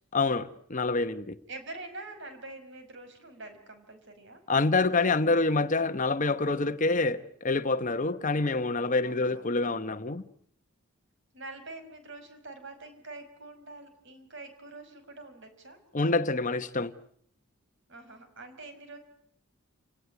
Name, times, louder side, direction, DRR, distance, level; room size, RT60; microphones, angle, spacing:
voice 1, 0.1-1.4 4.5-10.2 15.9-16.9, left 3 dB, 35° left, 1.0 m, -27 dB
voice 2, 1.5-4.4 9.0-9.5 11.3-15.8 17.9-19.0, right 2 dB, 55° right, 5.5 m, -45 dB
29.0 x 18.0 x 9.1 m
head